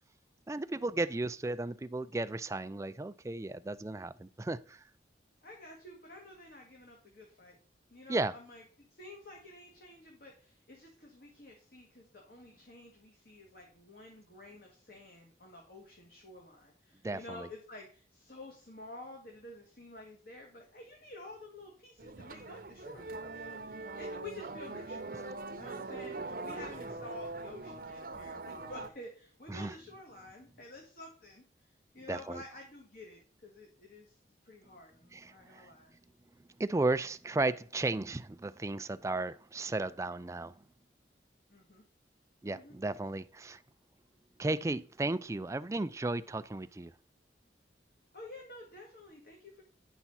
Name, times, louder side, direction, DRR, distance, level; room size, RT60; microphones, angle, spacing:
voice 1, 0.5-4.8 8.1-8.4 17.0-17.5 29.5-29.7 32.1-32.4 35.1-35.7 36.6-40.6 42.4-43.6 44.4-46.9, right 2 dB, 15° right, 0.3 m, -34 dB
voice 2, 5.4-7.6 7.9-8.6 8.9-34.2 34.4-36.0 41.5-41.8 42.4-42.8 48.1-49.6, left 2 dB, 50° left, 1.8 m, -50 dB
sound 1, 22.0-28.9, right 3 dB, 50° right, 0.8 m, -42 dB
10.0 x 5.9 x 4.2 m
head